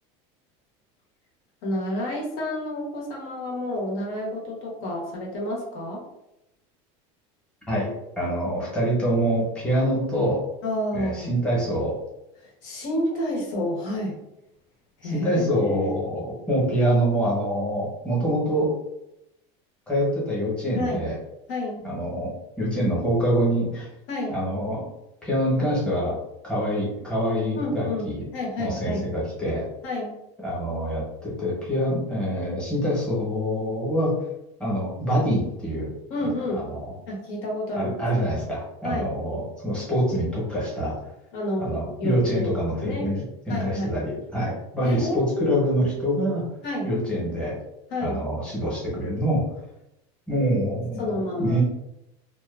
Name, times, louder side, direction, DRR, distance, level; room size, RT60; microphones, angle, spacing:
voice 1, 1.6-6.0 10.6-11.4 12.4-14.2 15.0-16.0 20.7-21.1 21.5-21.8 24.1-24.4 27.5-29.1 29.8-30.1 36.1-36.6 37.1-38.0 38.8-39.1 41.3-42.5 42.8-43.1 43.5-44.0 44.8-46.0 46.6-46.9 47.9-48.2 51.0-51.6, left 1 dB, 65° left, -2 dB, 1.0 m, -29 dB
voice 2, 7.7-10.4 10.9-12.0 15.0-18.7 19.9-21.2 21.8-22.3 22.6-23.9 24.3-24.9 25.2-26.2 26.4-28.2 28.6-29.7 30.4-34.2 34.6-35.9 36.6-36.9 37.7-41.0 41.6-46.5 46.8-47.6 48.0-49.4 50.3-51.6, equal, 5° left, -6 dB, 0.9 m, -25 dB
2.6 x 2.2 x 2.4 m, 0.87 s
supercardioid pair, 150°, 15 cm